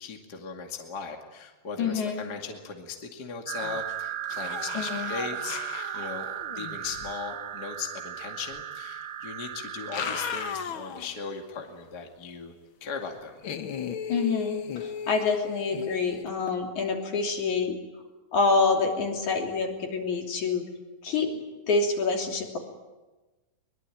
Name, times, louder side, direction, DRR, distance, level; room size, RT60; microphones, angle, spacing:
voice 1, 0.0-12.5 12.8-13.4, left 5 dB, 30° left, 3 dB, 2.4 m, -38 dB
voice 2, 1.8-2.2 4.7-5.1 14.1-17.8 18.3-20.6 21.0-21.3 21.7-22.6, left 4 dB, 55° left, 2 dB, 4.4 m, -27 dB
sound 1, 3.5-10.5, right 11 dB, 90° right, 3.2 m, -36 dB
sound 2, 3.6-4.0 4.2-7.1 8.5-8.6 9.7-11.2 11.6-11.7 13.4-16.2, left 8 dB, 80° left, 1.1 m, -36 dB
23.5 x 22.5 x 9.2 m, 1.2 s
omnidirectional pair, 4.2 m